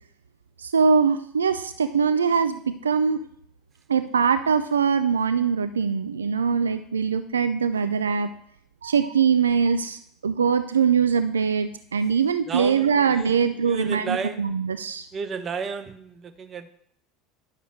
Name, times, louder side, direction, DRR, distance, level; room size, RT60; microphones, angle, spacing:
voice 1, 0.6-3.2 3.9-8.3 8.8-15.1, right 6 dB, 80° right, 11 dB, 0.4 m, -22 dB
voice 2, 12.5-13.4 13.6-14.4 15.1-16.7, right 5 dB, 30° right, 8 dB, 1.1 m, -32 dB
10.5 x 6.9 x 6.4 m, 0.67 s
figure-of-eight pair, 75°, 0 cm